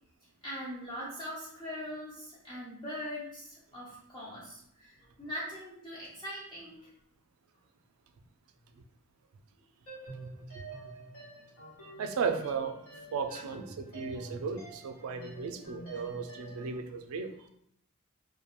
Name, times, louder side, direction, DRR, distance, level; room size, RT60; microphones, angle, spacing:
voice 1, 0.4-6.9, equal, 20° left, -7 dB, 0.4 m, -41 dB
sound 1, 9.9-16.7, right 2 dB, 85° left, 1.0 m, -47 dB
voice 2, 12.0-17.3, right 5 dB, 90° right, 6 dB, 0.3 m, -35 dB
2.3 x 2.1 x 2.9 m, 0.70 s
head